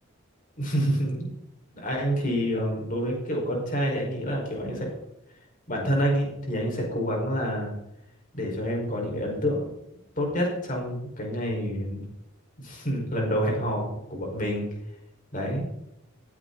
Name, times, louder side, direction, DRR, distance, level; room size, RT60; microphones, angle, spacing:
voice 1, 0.6-1.3 1.7-4.9 5.7-7.7 8.3-9.7 10.2-12.0 12.6-14.7 15.3-15.6, equal, 40° left, 0 dB, 5.3 m, -28 dB
16.5 x 15.5 x 4.1 m, 0.84 s
head